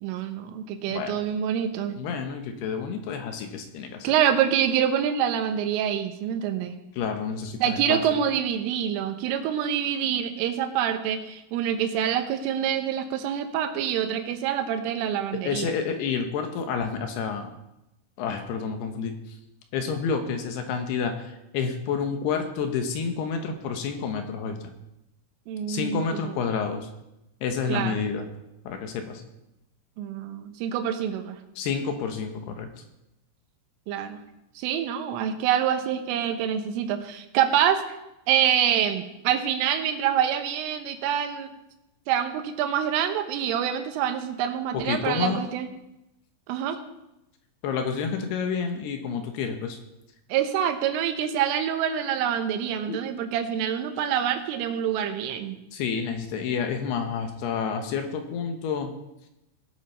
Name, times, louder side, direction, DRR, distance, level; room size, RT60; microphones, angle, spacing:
voice 1, 0.0-2.0 4.0-6.8 7.6-15.7 25.5-26.4 27.7-28.0 30.0-31.4 33.9-34.2 34.6-37.8 38.3-41.5 42.1-45.7 46.5-46.8 50.3-55.6, right 9 dB, 85° right, 7 dB, 3.6 m, -26 dB
voice 2, 0.9-1.2 2.0-4.1 6.9-8.0 15.4-17.6 18.2-19.1 19.7-24.6 25.7-26.9 27.4-28.3 28.7-29.2 31.6-32.7 44.7-45.4 47.6-49.8 52.9-53.0 55.7-58.9, left 6 dB, 70° left, 5 dB, 2.8 m, -29 dB
18.5 x 7.7 x 5.5 m, 0.90 s
omnidirectional pair, 5.6 m